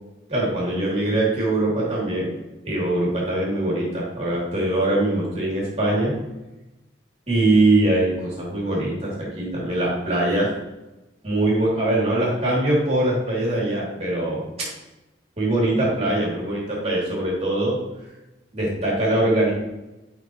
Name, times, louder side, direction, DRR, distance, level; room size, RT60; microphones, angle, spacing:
voice 1, 0.3-2.4 2.6-6.1 7.3-10.5 11.2-14.7 15.4-17.8 18.5-19.5, right 1 dB, 35° right, -5 dB, 3.1 m, -22 dB
11.5 x 5.9 x 3.1 m, 0.99 s
head